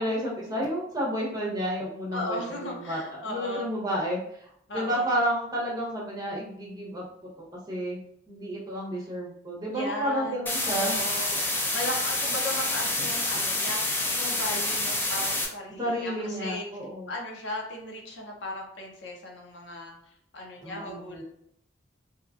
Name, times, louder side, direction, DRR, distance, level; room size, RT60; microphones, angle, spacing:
voice 1, 0.0-4.2 4.7-7.0 7.7-8.0 8.3-11.0 15.8-17.1 20.6-21.2, equal, 20° right, -5 dB, 0.9 m, -31 dB
voice 2, 2.1-3.7 4.7-5.1 9.7-13.9 14.1-16.7 17.1-19.9 20.3-21.2, left 1 dB, 70° left, 0 dB, 0.7 m, -36 dB
sound 1, 10.5-15.5, left 2 dB, 10° left, 0.4 m, -28 dB
2.8 x 2.3 x 2.4 m, 0.69 s
head